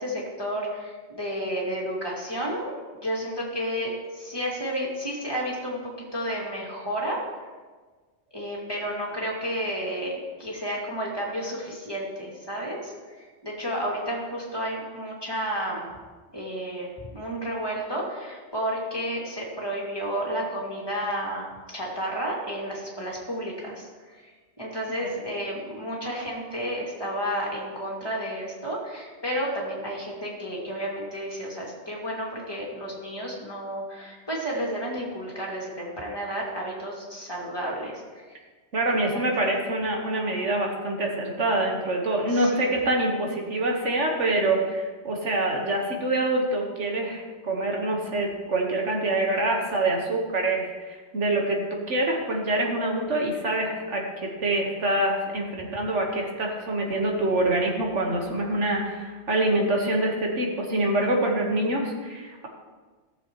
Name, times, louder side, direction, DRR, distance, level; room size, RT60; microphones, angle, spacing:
voice 1, 0.0-2.7 3.0-7.2 8.3-15.9 16.3-21.5 21.7-38.2 38.9-39.3 42.3-42.7, equal, 20° left, -4 dB, 2.3 m, -31 dB
voice 2, 38.7-62.5, right 1 dB, 85° right, 0 dB, 1.8 m, -25 dB
16.5 x 7.0 x 3.1 m, 1.4 s
omnidirectional pair, 1.2 m